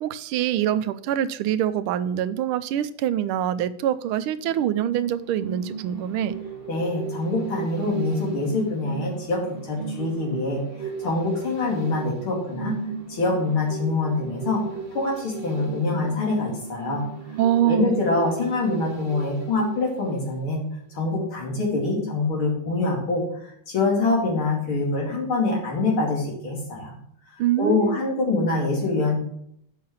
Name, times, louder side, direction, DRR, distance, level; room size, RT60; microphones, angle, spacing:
voice 1, 0.0-6.3 17.4-18.0 27.4-28.0, right 11 dB, 85° right, 13 dB, 1.5 m, -24 dB
sound 1, 4.4-20.7 21.0-21.1, right 6 dB, 25° right, 2.2 m, -36 dB
voice 2, 6.7-12.8 13.1-14.6 14.9-17.1 17.6-26.9 27.6-29.2, left 3 dB, 75° left, -1 dB, 3.5 m, -25 dB
7.6 x 5.5 x 7.2 m, 0.70 s
omnidirectional pair, 2.3 m